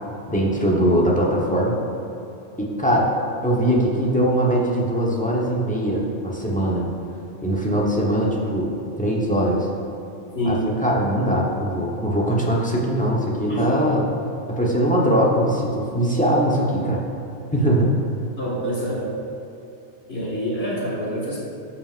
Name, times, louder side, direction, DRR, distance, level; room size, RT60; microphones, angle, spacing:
voice 1, 0.3-1.8 2.6-3.1 3.4-6.9 7.4-8.7 9.0-9.7 10.4-14.1 14.5-17.0 17.5-17.9, equal, 5° left, -4 dB, 1.0 m, -21 dB
voice 2, 10.3-10.7 13.5-14.0 18.4-19.1 20.1-21.4, equal, 60° left, -6 dB, 2.2 m, -26 dB
12.5 x 5.7 x 2.5 m, 2.9 s
omnidirectional pair, 1.2 m